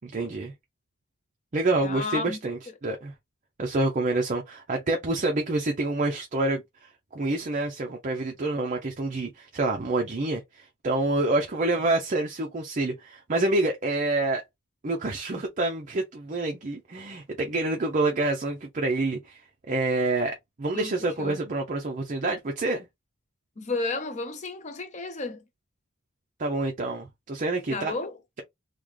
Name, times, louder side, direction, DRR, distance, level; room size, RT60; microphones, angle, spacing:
voice 1, 0.0-0.5 1.5-3.1 3.6-14.4 14.8-19.4 19.7-22.9 26.4-27.9, right 2 dB, 35° right, 0.5 m, -27 dB
voice 2, 1.8-2.4 20.7-20.9 21.2-21.4 23.6-25.4 27.7-28.1, left 3 dB, 35° left, 0.6 m, -32 dB
3.2 x 2.1 x 3.6 m
head